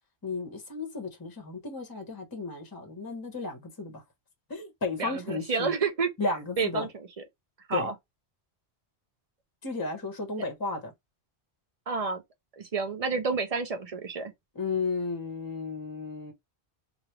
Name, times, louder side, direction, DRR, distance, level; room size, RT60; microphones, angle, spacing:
voice 1, 0.2-4.0 4.5-5.7 6.2-6.9 7.7-7.9 9.6-10.9 14.5-16.3, left 3 dB, 20° left, 0.8 m, -33 dB
voice 2, 5.0-6.1 6.6-7.1 7.7-7.9 11.9-12.2 12.6-14.3, right 4 dB, 40° right, 0.7 m, -29 dB
3.3 x 2.5 x 2.9 m
omnidirectional pair, 1.1 m